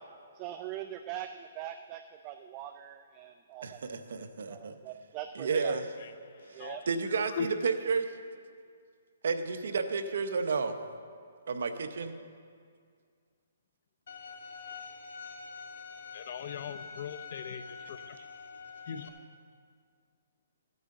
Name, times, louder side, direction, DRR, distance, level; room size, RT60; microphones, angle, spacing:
voice 1, 0.4-3.8 4.5-5.8 6.6-6.8, right 11 dB, 25° right, 8 dB, 0.4 m, -42 dB
voice 2, 3.6-4.7 5.3-5.9 6.9-8.0 9.2-10.7 11.5-12.1, right 5 dB, 70° right, 8 dB, 0.9 m, -31 dB
voice 3, 6.0-7.5 16.1-18.2 18.9-19.1, left 7 dB, 50° left, 11 dB, 0.6 m, -40 dB
Bowed string instrument, 14.1-19.1, left 5 dB, 75° left, 1.5 m, -46 dB
16.0 x 9.3 x 3.8 m, 2.1 s
hypercardioid pair, 160°, 0 cm